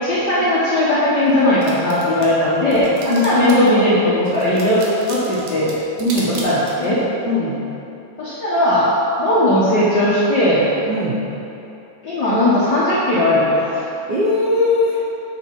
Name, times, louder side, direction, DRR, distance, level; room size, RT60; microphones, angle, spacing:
voice 1, 0.0-4.8 5.1-5.7 6.4-7.0 8.2-8.9 9.2-10.6 12.0-13.8, left 1 dB, 60° left, -10 dB, 1.1 m, -17 dB
sound 1, 1.3-3.7 4.2-7.0, right 3 dB, 60° right, 1.7 m, -35 dB
voice 2, 6.0-6.3 7.3-7.6 10.9-11.3 14.1-15.0, left 2 dB, 85° right, -7 dB, 0.9 m, -19 dB
7.2 x 6.3 x 4.6 m, 3.0 s
omnidirectional pair, 3.5 m